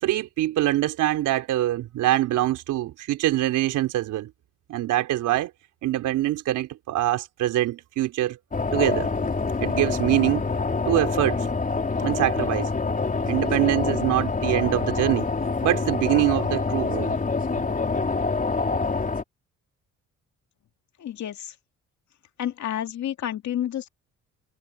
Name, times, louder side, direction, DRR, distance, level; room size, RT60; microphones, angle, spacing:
voice 1, 0.0-4.3 4.7-5.5 5.8-8.4 8.7-9.1 9.6-10.4 10.9-11.4 12.0-12.7 13.3-15.3 15.6-17.1, right 14 dB, 90° right, 4.1 m, -24 dB
sound 1, 8.5-19.2, left 4 dB, 25° left, 3.7 m, -26 dB
voice 2, 21.0-21.5 22.4-23.9, left 11 dB, 65° left, 2.4 m, -30 dB
cardioid pair, 90°, 30 cm